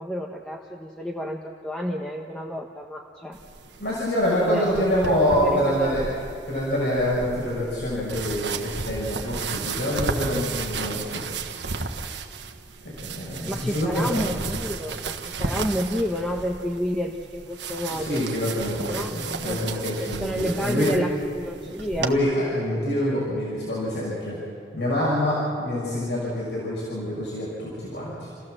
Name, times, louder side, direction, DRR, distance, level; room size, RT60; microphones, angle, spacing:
voice 1, 0.0-3.4 4.5-6.0 13.5-18.2 18.9-19.2 19.4-19.6 20.2-22.1, equal, 5° left, -1 dB, 1.1 m, -30 dB
sound 1, 3.3-22.1, right 4 dB, 80° right, 1.3 m, -34 dB
voice 2, 3.8-6.1 6.5-11.2 12.8-14.3 17.9-21.0 21.7-24.4 24.7-28.3, equal, 75° left, -6 dB, 5.7 m, -26 dB
29.0 x 15.0 x 7.7 m, 2.4 s
head